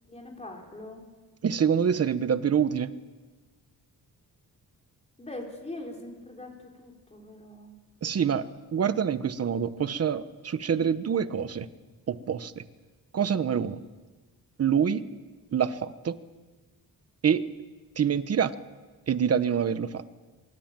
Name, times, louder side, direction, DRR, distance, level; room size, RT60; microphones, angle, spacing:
voice 1, 0.1-1.1 5.2-7.8, left 2 dB, 15° left, 0 dB, 3.9 m, -42 dB
voice 2, 1.4-2.9 8.0-8.4 8.7-11.7 12.1-12.6 13.1-13.8 14.6-15.0 15.5-16.2 17.2-17.4 18.0-18.5 19.1-20.0, right 7 dB, 40° right, 12 dB, 1.1 m, -26 dB
24.0 x 23.5 x 9.0 m, 1.3 s
wide cardioid pair, 165°, 36 cm